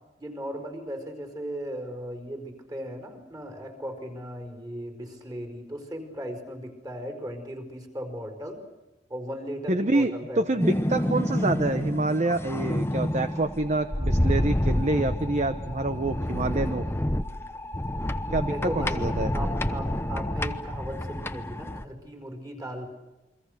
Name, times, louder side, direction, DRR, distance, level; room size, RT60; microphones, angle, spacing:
voice 1, 0.2-8.6 9.1-10.7 18.4-22.9, equal, 20° right, 5 dB, 4.9 m, -37 dB
voice 2, 9.7-16.8 18.3-19.3, right 2 dB, 40° right, 9 dB, 0.9 m, -27 dB
sound 1, 10.6-21.8, left 1 dB, 15° left, 0.9 m, -28 dB
29.5 x 23.5 x 6.6 m, 1.1 s
head